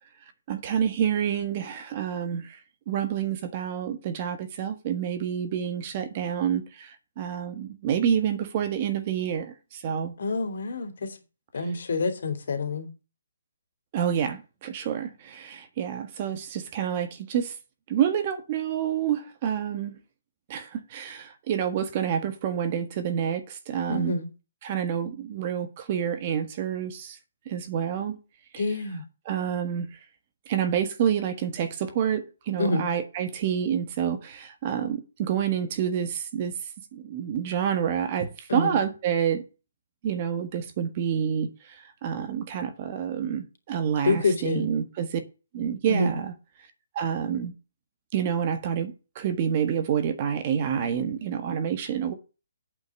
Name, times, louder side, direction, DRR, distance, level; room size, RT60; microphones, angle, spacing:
voice 1, 0.5-2.6 2.9-10.1 13.9-17.5 17.9-19.9 20.5-24.2 24.6-27.2 27.4-28.2 29.3-29.9 30.5-36.5 36.9-39.4 40.0-41.5 42.0-45.2 45.5-46.3 46.9-47.5 48.1-52.1, right 8 dB, 35° right, 1.6 m, -28 dB
voice 2, 10.2-11.2 11.5-12.9 23.9-24.3 28.6-29.0 32.6-32.9 38.5-38.7 44.0-44.7 45.9-46.1, left 3 dB, 65° left, 3.1 m, -27 dB
8.7 x 6.2 x 7.3 m
hypercardioid pair, 160°, 0 cm